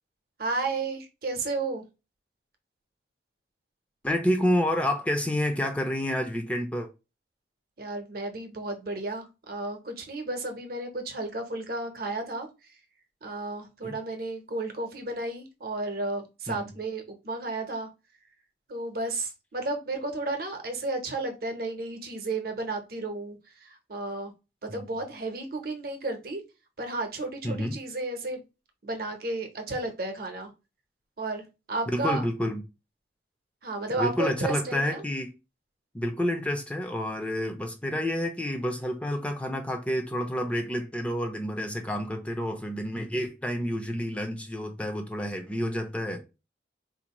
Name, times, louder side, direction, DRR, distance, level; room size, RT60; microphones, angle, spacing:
voice 1, 0.4-1.8 7.8-12.5 13.2-17.9 18.7-24.3 24.6-26.4 26.8-28.4 28.8-30.5 31.2-31.4 31.7-32.2 33.6-35.0, right 2 dB, 55° right, 0.8 m, -33 dB
voice 2, 4.0-6.9 13.8-14.0 16.5-16.7 24.7-25.0 27.4-27.8 31.9-32.6 33.9-35.3 35.9-46.2, left 1 dB, 5° left, 0.4 m, -29 dB
3.9 x 2.6 x 2.9 m
head